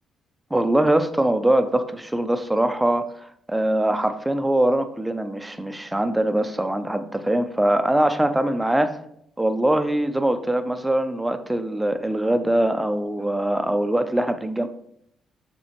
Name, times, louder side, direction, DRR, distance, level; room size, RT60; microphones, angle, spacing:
voice 1, 0.5-9.0 9.4-14.7, right 1 dB, 10° right, 9 dB, 0.7 m, -22 dB
8.0 x 6.0 x 3.1 m, 0.71 s
cardioid pair, 90°, 0 cm